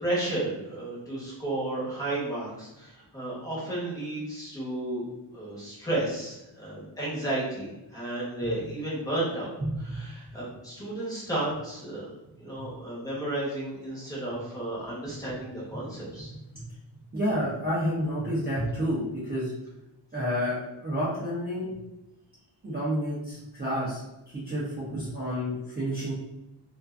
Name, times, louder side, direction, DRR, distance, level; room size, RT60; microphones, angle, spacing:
voice 1, 0.0-5.0 5.3-9.5 9.8-12.1 12.3-16.3, right 1 dB, 10° left, -7 dB, 0.8 m, -33 dB
voice 2, 9.6-10.0 16.5-16.6 17.1-19.5 20.1-21.7 22.6-26.1, equal, 20° right, -10 dB, 0.5 m, -30 dB
2.4 x 2.3 x 2.3 m, 0.95 s
wide cardioid pair, 175°, 45 cm